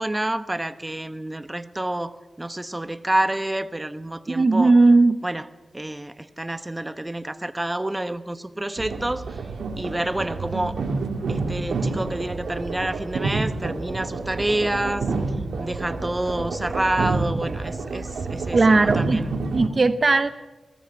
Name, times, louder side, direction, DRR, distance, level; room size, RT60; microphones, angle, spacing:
voice 1, 0.0-4.7 5.2-5.5 5.7-9.4 9.8-10.8 11.3-15.1 15.6-19.3, right 1 dB, 20° right, 1.1 m, -28 dB
voice 2, 4.3-5.2 18.5-19.2 19.5-20.3, right 3 dB, 50° right, 0.8 m, -17 dB
sound 1, 8.8-19.7, right 3 dB, 90° right, 2.1 m, -28 dB
21.5 x 14.0 x 8.8 m
cardioid pair, 60°, 0 cm